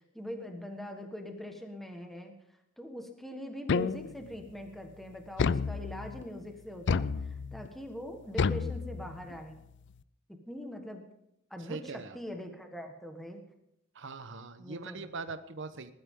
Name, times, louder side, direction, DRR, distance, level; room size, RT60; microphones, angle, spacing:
voice 1, 0.1-2.3 2.8-9.6 10.3-11.0 11.5-13.4 14.6-15.1, left 1 dB, ahead, 3 dB, 1.4 m, -42 dB
sound 1, 3.7-4.4 5.4-6.2 6.9-7.7 8.4-9.4, left 5 dB, 60° left, 0.5 m, -30 dB
voice 2, 11.6-12.2 13.9-15.9, right 3 dB, 65° right, 11 dB, 1.0 m, -41 dB
20.0 x 12.0 x 3.8 m, 0.79 s
head